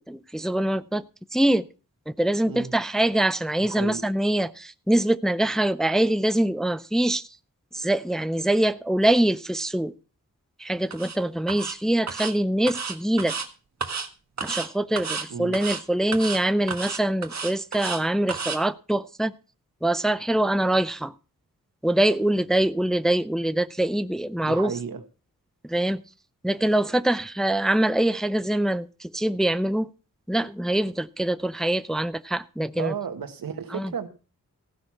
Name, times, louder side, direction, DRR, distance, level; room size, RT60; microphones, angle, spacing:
voice 1, 0.1-1.0 1.3-1.7 2.1-7.3 7.7-9.9 10.6-13.3 14.4-19.3 19.8-21.1 21.8-24.7 25.7-26.0 26.4-29.9 30.3-32.9 33.7-33.9, right 1 dB, ahead, 0.5 m, -24 dB
voice 2, 3.6-4.1 15.3-15.6 24.4-25.0 32.8-34.1, right 7 dB, 90° right, 1.5 m, -33 dB
sound 1, 10.9-11.2 11.5-11.8 12.1-12.3 12.7-13.5 13.8-14.1 14.4-14.7 15.0-15.3 15.5-15.8 16.1-16.4 16.7-18.0 18.3-18.6, right 5 dB, 55° right, 1.6 m, -31 dB
16.0 x 6.2 x 5.8 m
wide cardioid pair, 75°, 33 cm